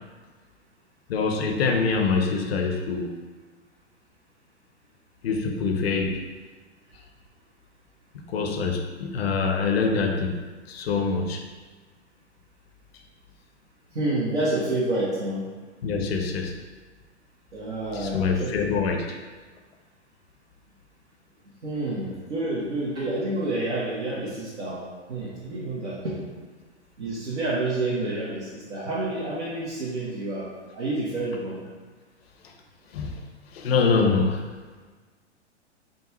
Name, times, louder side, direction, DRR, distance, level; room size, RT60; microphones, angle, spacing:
voice 1, 1.1-3.2 5.2-6.2 8.1-10.4 10.7-11.4 15.8-16.6 17.9-19.2 32.4-32.5 32.9-33.2 33.5-34.5, left 4 dB, 60° left, 3 dB, 0.7 m, -25 dB
voice 2, 13.9-15.4 17.5-18.5 21.6-26.2 27.0-30.5 30.7-31.6, right 2 dB, 80° right, -10 dB, 1.2 m, -29 dB
5.2 x 2.4 x 3.0 m, 1.4 s
hypercardioid pair, 115°, 35 cm